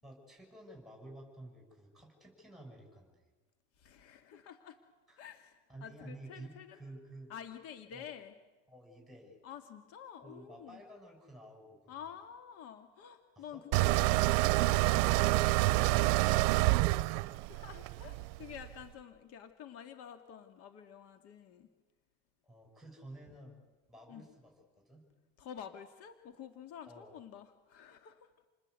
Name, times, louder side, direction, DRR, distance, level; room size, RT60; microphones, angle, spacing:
voice 1, 0.0-3.3 5.1-5.2 5.7-7.3 7.9-8.1 8.7-9.4 10.2-12.0 13.4-13.6 22.4-23.6 23.9-25.0 26.9-27.2, right 1 dB, ahead, 1 dB, 7.0 m, -52 dB
voice 2, 3.8-4.8 5.2-6.8 7.3-8.3 9.4-10.8 11.9-15.2 17.3-21.7 24.1-24.3 25.4-28.3, left 8 dB, 55° left, 7 dB, 2.2 m, -50 dB
sound 1, 13.7-18.7, right 20 dB, 70° right, 0.7 m, -27 dB
28.5 x 20.5 x 8.3 m, 1.2 s
supercardioid pair, 135°, 29 cm